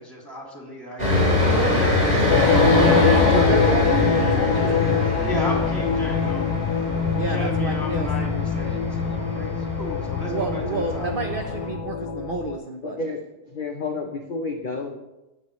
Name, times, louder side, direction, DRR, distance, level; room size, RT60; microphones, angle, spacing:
voice 1, 0.0-3.1 3.3-4.3 4.7-11.1, left 1 dB, 15° left, -1 dB, 2.0 m, -34 dB
sound 1, 1.0-11.7, left 1 dB, 20° right, 3.9 m, -24 dB
sound 2, 2.3-12.6, left 7 dB, 70° left, 1.1 m, -24 dB
voice 2, 2.6-5.1 7.1-8.1 10.3-13.0, right 3 dB, 50° right, 3 dB, 0.6 m, -30 dB
voice 3, 12.8-13.2 13.5-15.0, left 3 dB, 45° left, 2 dB, 0.6 m, -30 dB
16.0 x 6.6 x 3.1 m, 0.99 s
omnidirectional pair, 1.8 m